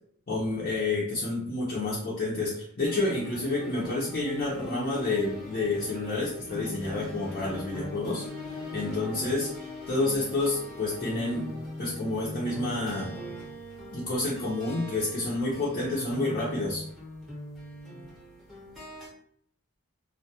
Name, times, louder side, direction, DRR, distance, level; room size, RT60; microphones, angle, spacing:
voice 1, 0.3-8.3 8.7-9.5 9.9-11.4 11.8-13.1 13.9-16.8, left 2 dB, 45° left, -7 dB, 0.5 m, -29 dB
sound 1, 2.8-19.1, left 1 dB, ahead, 0.7 m, -40 dB
2.2 x 2.1 x 2.7 m, 0.66 s
head